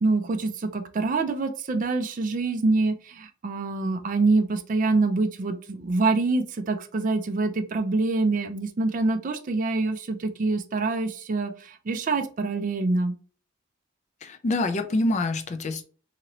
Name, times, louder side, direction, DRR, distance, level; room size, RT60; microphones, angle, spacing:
voice 1, 0.0-13.1, right 3 dB, 40° right, 8 dB, 0.4 m, -25 dB
voice 2, 14.2-15.8, left 2 dB, 35° left, 8 dB, 0.4 m, -26 dB
2.9 x 2.7 x 2.9 m, 0.39 s
head